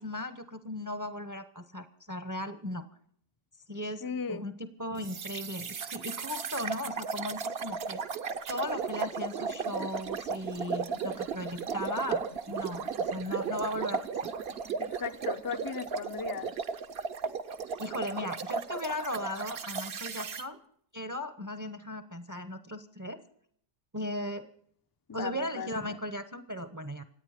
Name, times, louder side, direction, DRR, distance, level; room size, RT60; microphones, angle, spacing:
voice 1, 0.0-2.8 3.7-8.0 8.5-14.0 17.8-20.6 20.9-23.2 23.9-24.4 25.1-27.0, left 1 dB, 15° right, 10 dB, 0.7 m, -37 dB
voice 2, 4.0-4.5 14.8-16.5 25.1-26.0, left 6 dB, 30° left, 9 dB, 0.4 m, -37 dB
sound 1, 5.0-20.4, right 5 dB, 50° right, 0.8 m, -35 dB
27.0 x 9.1 x 5.0 m, 0.65 s
omnidirectional pair, 1.7 m